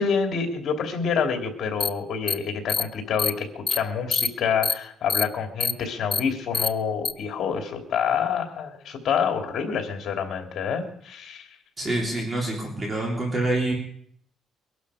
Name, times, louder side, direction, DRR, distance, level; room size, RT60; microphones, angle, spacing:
voice 1, 0.0-11.5, left 6 dB, 55° left, 4 dB, 2.9 m, -27 dB
sound 1, 1.8-1.9 2.3-2.4 2.7-2.8 3.2-3.3 3.7-3.8 4.1-4.3 4.6-4.7 5.1-5.2 5.6-5.7 6.1-6.2 6.5-6.7 7.0-7.1, left 4 dB, 25° left, 0.7 m, -24 dB
voice 2, 11.8-13.7, right 2 dB, 25° right, -1 dB, 3.7 m, -26 dB
23.0 x 11.5 x 5.0 m, 0.66 s
cardioid pair, 125°, 0 cm